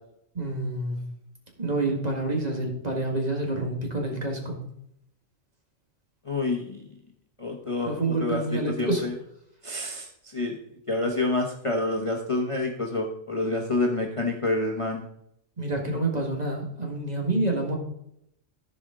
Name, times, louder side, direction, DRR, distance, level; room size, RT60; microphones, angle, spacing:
voice 1, 0.4-1.0 1.6-4.6 7.9-9.0 15.6-17.8, right 2 dB, 30° right, 1 dB, 1.9 m, -28 dB
voice 2, 6.2-6.8 7.4-9.1 9.6-10.6 10.9-15.0, left 2 dB, 30° left, 1 dB, 0.9 m, -28 dB
14.5 x 5.0 x 3.7 m, 0.75 s
omnidirectional pair, 1.3 m